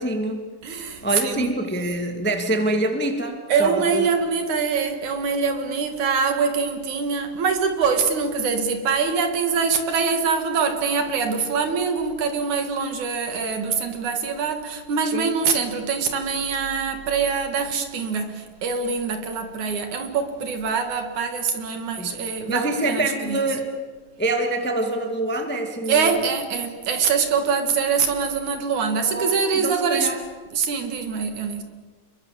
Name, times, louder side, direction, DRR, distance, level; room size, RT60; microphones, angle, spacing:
voice 1, 0.0-0.5 1.0-4.1 15.1-15.3 22.0-22.2 22.5-23.7 24.2-26.2 29.1-30.2, right 1 dB, 5° left, 1.4 m, -25 dB
voice 2, 0.6-1.5 3.5-23.4 25.9-30.1 30.5-31.6, right 5 dB, 60° right, 3.2 m, -24 dB
28.5 x 22.5 x 7.4 m
omnidirectional pair, 4.1 m